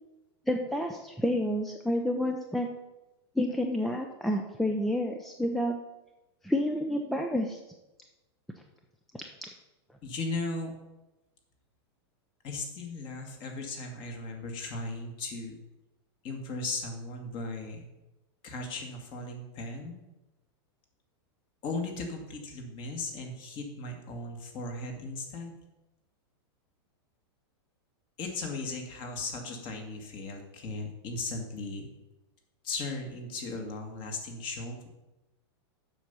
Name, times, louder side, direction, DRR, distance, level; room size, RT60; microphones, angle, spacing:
voice 1, 0.5-2.7 3.4-5.7 6.4-7.6, left 1 dB, ahead, 3 dB, 0.5 m, -29 dB
voice 2, 10.0-10.7 12.4-15.6 16.2-17.9 18.4-20.0 21.6-25.6 28.2-31.9 32.6-34.9, left 3 dB, 35° left, 3 dB, 2.0 m, -37 dB
7.6 x 5.9 x 6.8 m, 1.0 s
supercardioid pair, 150°, 14 cm